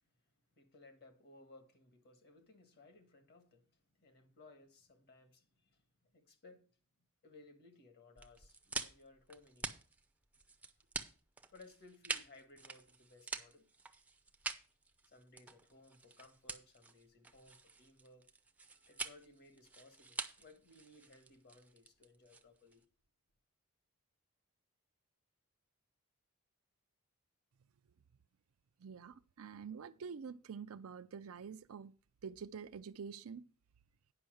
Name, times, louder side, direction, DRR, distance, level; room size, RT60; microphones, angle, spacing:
voice 1, 0.6-6.7 7.2-9.8 11.5-13.6 15.0-18.3 18.7-22.8, left 2 dB, 45° left, 1.5 m, -61 dB
sound 1, 8.2-22.8, right 3 dB, 5° right, 0.6 m, -46 dB
voice 2, 28.8-31.9 32.2-33.4, right 6 dB, 70° right, 0.4 m, -47 dB
9.8 x 5.5 x 6.3 m
head